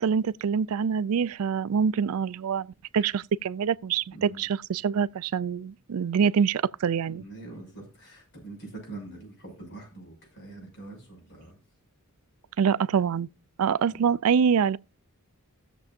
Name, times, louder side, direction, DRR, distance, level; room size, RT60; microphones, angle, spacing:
voice 1, 0.0-7.2 12.6-13.3 13.6-14.8, right 7 dB, 70° right, 0.4 m, -25 dB
voice 2, 4.1-4.4 7.0-11.6 13.9-14.1, right 2 dB, 55° left, 6.5 m, -44 dB
18.0 x 7.0 x 2.6 m
head